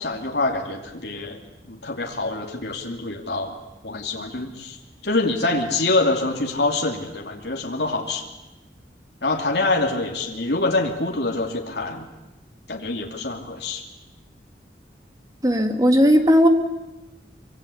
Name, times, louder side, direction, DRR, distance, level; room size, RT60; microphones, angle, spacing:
voice 1, 0.0-1.4 1.7-3.5 3.8-4.8 5.0-8.3 9.2-12.1 12.7-13.8, left 2 dB, 70° left, 1 dB, 2.7 m, -25 dB
voice 2, 15.4-16.5, equal, 20° right, 6 dB, 2.1 m, -16 dB
25.0 x 24.5 x 8.5 m, 1.0 s
head